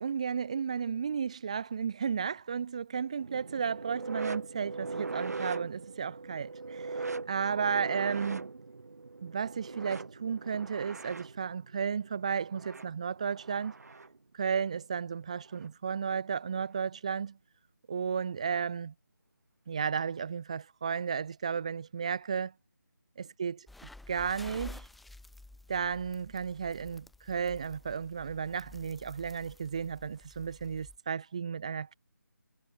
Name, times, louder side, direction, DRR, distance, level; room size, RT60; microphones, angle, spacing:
voice 1, 0.0-8.5 9.2-13.7 14.3-17.4 17.9-18.9 19.7-22.5 23.4-23.5 24.1-24.9 25.7-31.9, right 6 dB, 20° right, 1.0 m, -33 dB
sound 1, 3.2-14.2 15.5-15.7 16.6-16.7, right 3 dB, 55° right, 1.9 m, -40 dB
sound 2, 23.7-31.0, left 2 dB, ahead, 1.4 m, -51 dB
figure-of-eight pair, 175°, 11 cm